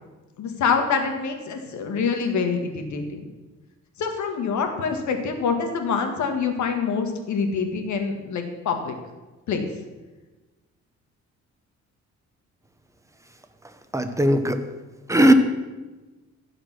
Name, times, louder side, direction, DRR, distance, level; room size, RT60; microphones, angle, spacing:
voice 1, 0.4-3.2 4.0-8.9 9.5-9.7, left 5 dB, 70° left, 5 dB, 1.7 m, -25 dB
voice 2, 13.9-14.6 15.1-15.3, right 1 dB, 10° right, 8 dB, 1.1 m, -17 dB
15.5 x 5.1 x 6.1 m, 1.2 s
cardioid pair, 90°, 30 cm